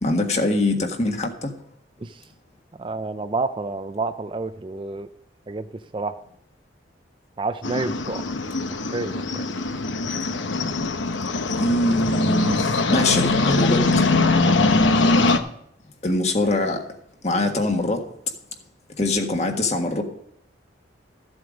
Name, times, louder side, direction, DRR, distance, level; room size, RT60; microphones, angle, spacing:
voice 1, 0.0-1.6 11.6-14.0 16.0-16.8 17.2-18.1 19.0-20.0, left 1 dB, 35° left, 1.5 m, -23 dB
voice 2, 2.8-5.1 5.5-5.7 5.9-6.2 7.4-8.2 8.9-9.4, right 3 dB, 25° right, 0.4 m, -29 dB
sound 1, 7.6-15.4, left 3 dB, 85° left, 0.9 m, -22 dB
14.0 x 7.9 x 5.1 m
head